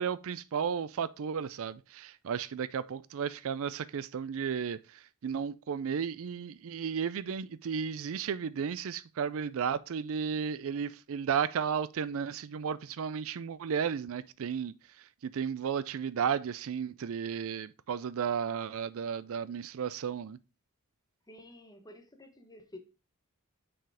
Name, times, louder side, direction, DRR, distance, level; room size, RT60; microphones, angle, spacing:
voice 1, 0.0-14.7 15.2-20.4, right 7 dB, 65° right, 0.4 m, -34 dB
voice 2, 21.3-22.8, left 1 dB, 20° left, 1.2 m, -51 dB
6.2 x 4.8 x 4.8 m
head